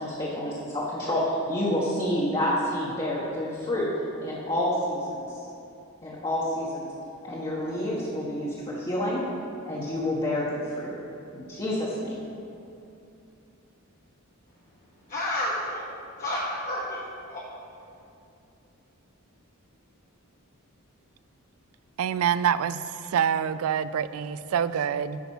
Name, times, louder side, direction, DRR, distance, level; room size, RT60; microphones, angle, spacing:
voice 1, 0.0-3.9 4.2-5.4 6.0-6.9 7.2-9.2 9.7-10.9 11.3-12.2, left 1 dB, 25° left, -7 dB, 1.3 m, -28 dB
voice 2, 15.1-17.5, left 1 dB, 40° left, -5 dB, 1.1 m, -31 dB
voice 3, 22.0-25.2, right 8 dB, 70° right, 15 dB, 0.3 m, -26 dB
9.7 x 6.0 x 5.6 m, 2.7 s
head